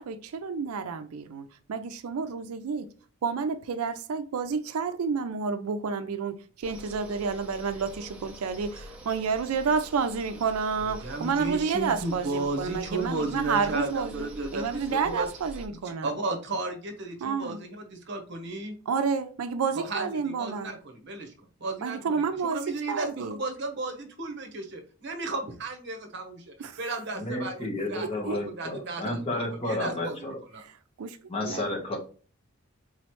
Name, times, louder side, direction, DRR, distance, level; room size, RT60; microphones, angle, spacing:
voice 1, 0.0-2.9 3.2-16.1 17.2-17.6 18.9-20.7 21.8-23.4 26.6-26.8 27.8-28.4 30.6-31.2 31.4-31.7, right 5 dB, 85° right, 0.4 m, -30 dB
sound 1, 6.6-15.7, right 1 dB, 5° right, 0.5 m, -45 dB
voice 2, 10.8-15.3 16.0-18.7 19.8-21.3 21.6-30.6, right 2 dB, 50° right, 0.9 m, -34 dB
voice 3, 27.2-30.4 31.3-32.0, left 1 dB, 25° left, 1.1 m, -31 dB
3.9 x 3.1 x 3.0 m
head